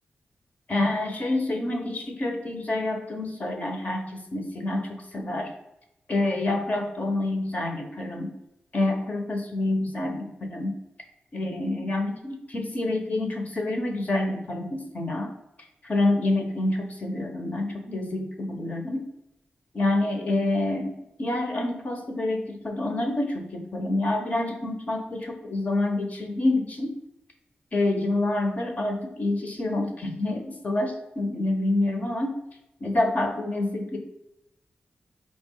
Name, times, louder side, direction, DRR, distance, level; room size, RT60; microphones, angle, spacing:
voice 1, 0.7-5.5 6.1-8.3 8.7-10.7 11.3-15.3 15.8-19.0 19.7-27.0 27.7-32.4 32.8-34.0, left 2 dB, 45° left, 3 dB, 0.9 m, -27 dB
4.7 x 3.0 x 3.8 m, 0.88 s
wide cardioid pair, 115°, 4 cm